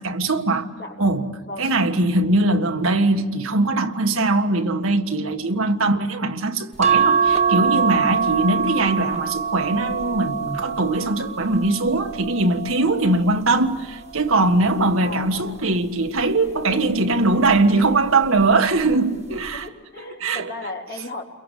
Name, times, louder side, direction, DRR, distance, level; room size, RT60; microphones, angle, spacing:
voice 1, 0.0-0.7 1.0-1.2 1.6-19.7 20.2-20.5, right 2 dB, 85° right, 1.7 m, -21 dB
voice 2, 0.8-1.7 15.0-15.6 19.3-21.2, left 2 dB, 55° left, 3.7 m, -36 dB
sound 1, 6.8-13.4 14.1-15.5 16.7-17.1 17.5-17.6, right 6 dB, 35° right, 1.5 m, -24 dB
30.0 x 22.5 x 8.4 m
head